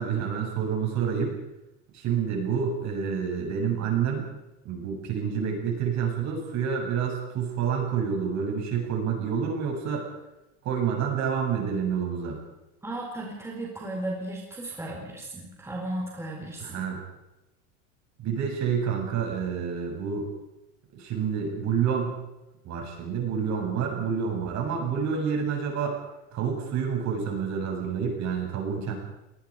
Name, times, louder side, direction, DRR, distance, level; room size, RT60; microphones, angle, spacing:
voice 1, 0.0-1.4 1.9-4.3 4.6-10.0 10.6-12.4 16.6-17.0 18.2-20.3 21.0-22.2 22.6-25.9 26.3-28.9, right 7 dB, 45° right, 1 dB, 8.0 m, -28 dB
voice 2, 12.8-16.9, right 1 dB, 5° right, -1 dB, 4.5 m, -35 dB
27.0 x 20.0 x 5.1 m, 0.94 s
supercardioid pair, 120°, 39 cm